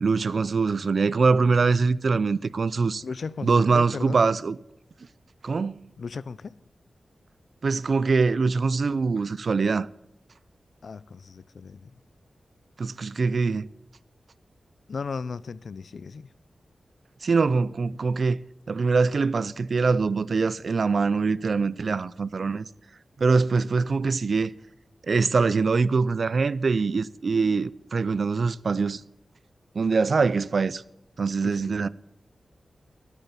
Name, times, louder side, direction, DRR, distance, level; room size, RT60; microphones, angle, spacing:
voice 1, 0.0-3.0 3.4-4.6 5.4-5.9 7.6-9.9 12.8-13.7 17.2-18.4 18.7-22.6 23.2-24.5 25.1-29.0 29.7-30.8 31.2-31.9, right 4 dB, 55° right, 0.3 m, -23 dB
voice 2, 3.0-4.2 6.0-6.5 10.8-12.0 14.9-16.3 31.4-31.9, left 5 dB, 65° left, 0.4 m, -36 dB
12.0 x 8.8 x 6.9 m
wide cardioid pair, 140°, 0 cm